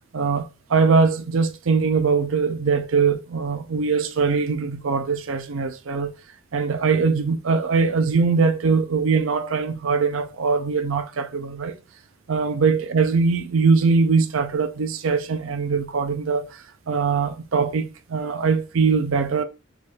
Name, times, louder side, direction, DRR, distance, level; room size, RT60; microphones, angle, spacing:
voice 1, 0.1-6.1 6.5-11.8 12.3-19.4, right 5 dB, 75° right, 0.5 m, -22 dB
6.9 x 2.4 x 3.2 m
head